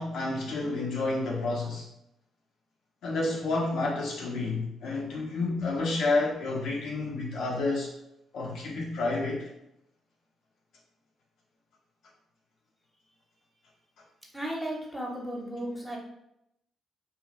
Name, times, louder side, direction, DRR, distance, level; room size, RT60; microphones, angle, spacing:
voice 1, 0.0-1.9 3.0-7.9 8.3-9.5, left 3 dB, 70° left, -2 dB, 0.6 m, -30 dB
voice 2, 14.3-16.0, right 1 dB, 5° right, -2 dB, 1.0 m, -35 dB
2.5 x 2.4 x 3.2 m, 0.81 s
hypercardioid pair, 50°, 0 cm